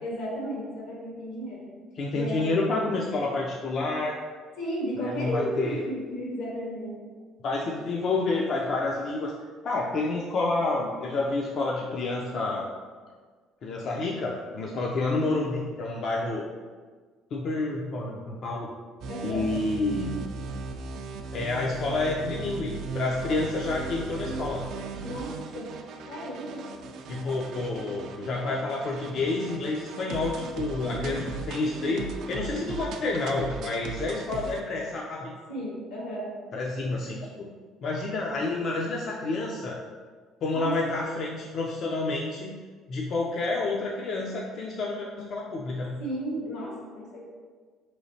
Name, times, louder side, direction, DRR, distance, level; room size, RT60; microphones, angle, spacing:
voice 1, 0.0-1.7 2.1-2.8 4.6-7.0 7.6-7.7 8.0-8.1 19.1-19.5 25.0-25.7 26.1-26.7 30.8-31.2 35.5-36.3 40.5-40.7 44.8-44.9 46.0-47.3, equal, 85° left, -4 dB, 1.4 m, -34 dB
voice 2, 2.0-4.2 5.0-5.9 7.4-9.3 9.6-12.7 13.6-16.5 17.3-18.7 19.2-20.2 21.3-24.6 27.1-35.3 36.5-37.5 37.8-39.8 40.4-42.6 42.9-46.0, left 3 dB, 50° left, -2 dB, 0.4 m, -29 dB
sound 1, 19.0-34.6, right 4 dB, 65° right, 0.3 m, -38 dB
4.8 x 3.1 x 2.7 m, 1.5 s
cardioid pair, 120°, 0 cm